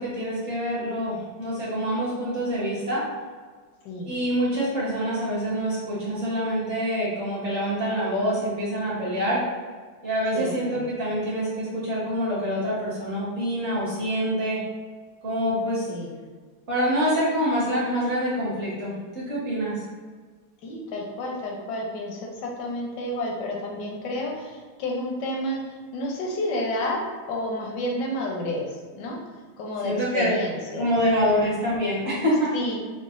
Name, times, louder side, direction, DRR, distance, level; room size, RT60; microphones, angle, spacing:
voice 1, 0.0-3.0 4.1-9.4 10.0-14.6 15.2-15.9 16.7-19.8 29.8-30.3 30.8-32.5, equal, 45° right, -8 dB, 1.0 m, -26 dB
voice 2, 10.3-10.9 15.9-16.1 20.6-27.0 27.3-28.6 28.9-29.2 29.6-30.9 32.5-32.8, left 1 dB, 70° left, -1 dB, 1.1 m, -30 dB
5.1 x 2.1 x 2.4 m, 1.5 s
omnidirectional pair, 2.3 m